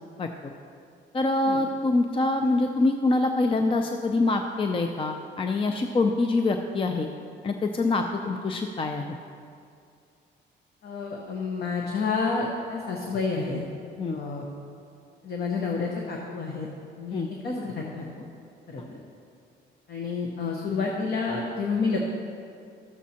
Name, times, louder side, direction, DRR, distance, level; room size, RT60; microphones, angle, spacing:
voice 1, 1.1-7.1 7.4-9.2 14.0-14.2 17.1-17.3, left 2 dB, 25° left, 5 dB, 0.5 m, -25 dB
voice 2, 10.8-13.6 14.1-14.4 15.2-16.7 17.0-18.2 18.7-19.0 19.9-22.0, left 4 dB, 55° left, -1 dB, 1.0 m, -29 dB
13.0 x 7.2 x 2.8 m, 2.4 s
cardioid pair, 90°, 20 cm